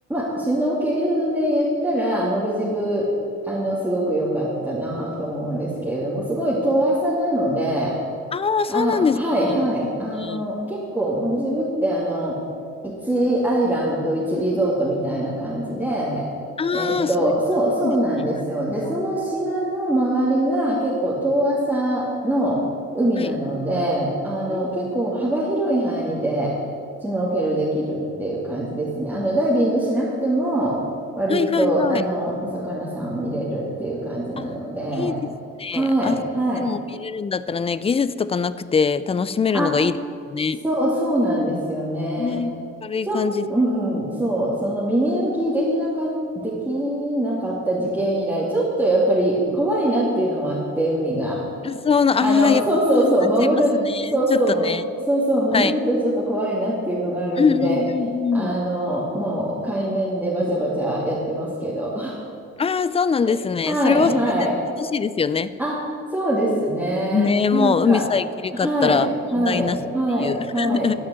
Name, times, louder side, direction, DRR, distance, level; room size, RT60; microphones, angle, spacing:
voice 1, 0.1-3.1 3.5-7.9 8.7-12.4 12.8-16.2 16.7-22.6 22.9-26.5 27.0-30.8 31.2-35.2 35.7-36.7 39.5-39.7 40.6-42.4 43.0-43.2 43.5-46.1 46.4-51.4 52.2-53.8 54.1-54.7 55.1-57.8 58.3-62.2 63.2-63.4 63.7-64.5 65.6-65.8 66.1-68.0 68.5-69.0 69.3-70.9, right 1 dB, 5° right, -8 dB, 2.2 m, -23 dB
voice 2, 8.3-9.2 9.5-9.6 9.8-9.9 10.2-10.4 16.6-17.3 17.8-18.0 23.2-23.3 24.5-24.7 31.3-32.0 34.4-34.5 35.0-35.2 35.6-36.2 36.6-40.0 40.3-40.6 42.2-42.5 42.8-43.4 51.6-52.6 52.9-53.1 53.8-54.8 55.5-55.7 57.4-58.6 62.6-64.1 64.8-65.5 67.1-69.1 69.4-69.8 70.2-70.9, left 5 dB, 20° left, 16 dB, 0.4 m, -22 dB
11.0 x 5.9 x 7.6 m, 2.3 s
cardioid pair, 90°, 30 cm